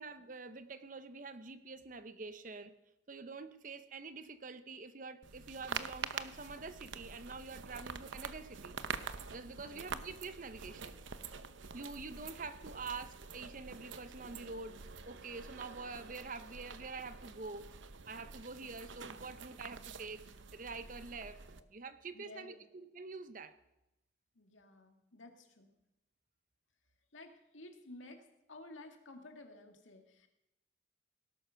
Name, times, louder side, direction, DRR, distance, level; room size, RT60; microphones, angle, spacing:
voice 1, 0.0-2.7 3.1-8.8 9.3-11.0 11.7-14.8 15.1-17.7 18.1-21.4 21.7-23.5, right 4 dB, 45° right, 11 dB, 0.8 m, -46 dB
sound 1, 5.2-21.6, right 5 dB, 80° right, 0.8 m, -46 dB
voice 2, 9.5-9.8 21.6-21.7 22.1-22.6 24.3-25.7 27.1-30.3, left 2 dB, 85° left, 5 dB, 2.1 m, -54 dB
18.0 x 11.5 x 5.8 m, 0.90 s
head